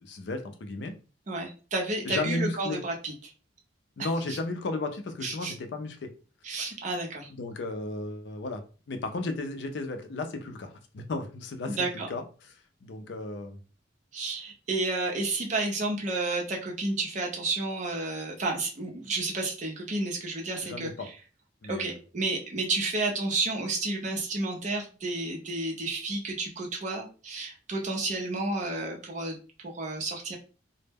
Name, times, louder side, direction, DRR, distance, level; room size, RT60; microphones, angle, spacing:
voice 1, 0.0-0.9 2.0-2.8 4.0-6.1 7.3-8.6 8.9-12.5 12.8-13.6 20.6-21.1 21.6-22.0, left 2 dB, 65° left, 6 dB, 0.4 m, -34 dB
voice 2, 1.3-3.1 4.3-4.4 5.2-5.5 6.4-7.3 11.7-12.1 14.1-20.9 21.7-29.4 29.6-30.4, right 2 dB, 40° right, 1 dB, 0.6 m, -31 dB
2.1 x 2.1 x 3.3 m, 0.36 s
head